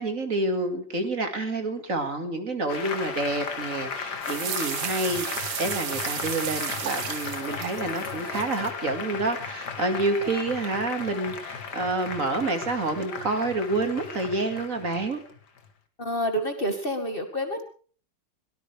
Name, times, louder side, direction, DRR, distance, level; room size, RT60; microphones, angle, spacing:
voice 1, 0.0-15.2, right 2 dB, 45° right, 6 dB, 2.5 m, -28 dB
Applause, 2.7-15.7, left 5 dB, 65° left, 2.3 m, -36 dB
sound 1, 4.2-8.7, right 10 dB, 75° right, 1.7 m, -34 dB
voice 2, 16.0-17.6, equal, 30° left, 6 dB, 2.2 m, -28 dB
22.5 x 18.5 x 3.4 m, 0.42 s
omnidirectional pair, 2.0 m